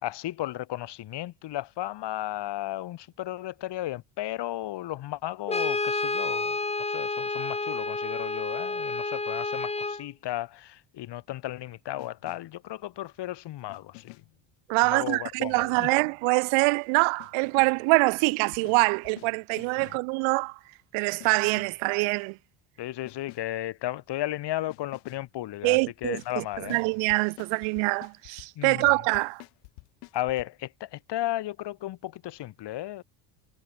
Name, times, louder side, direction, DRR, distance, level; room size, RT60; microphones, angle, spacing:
voice 1, 0.0-6.6 6.9-14.1 14.9-15.9 22.8-26.8 28.6-28.9 30.1-33.0, left 14 dB, 55° left, 3.1 m, -34 dB
Brass instrument, 5.5-10.0, left 3 dB, 15° left, 2.3 m, -30 dB
sound 1, 12.0-12.7 13.7-14.5 15.5-16.1 17.2-17.9 18.5-20.1 21.2-21.9 23.1-23.6 24.7-25.3 26.0-30.5, left 38 dB, 90° left, 3.2 m, -50 dB
voice 2, 14.7-20.6 20.9-22.4 25.6-29.4, right 32 dB, 80° right, 0.7 m, -25 dB
cardioid pair, 115°, 48 cm